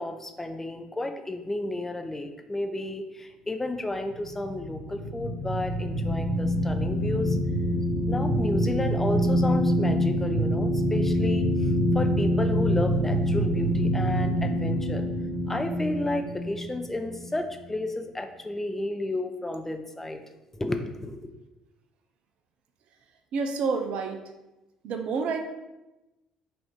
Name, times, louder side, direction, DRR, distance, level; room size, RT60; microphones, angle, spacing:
voice 1, 0.0-7.4 8.1-15.1 15.5-20.2 20.5-21.2, left 2 dB, 15° left, 6 dB, 0.6 m, -32 dB
sound 1, 4.1-17.7, equal, 70° left, 1.0 m, -26 dB
voice 2, 23.3-24.2 24.8-25.4, right 5 dB, 60° right, 6 dB, 0.5 m, -28 dB
5.6 x 2.6 x 3.6 m, 1.0 s
hypercardioid pair, 55°, 2 cm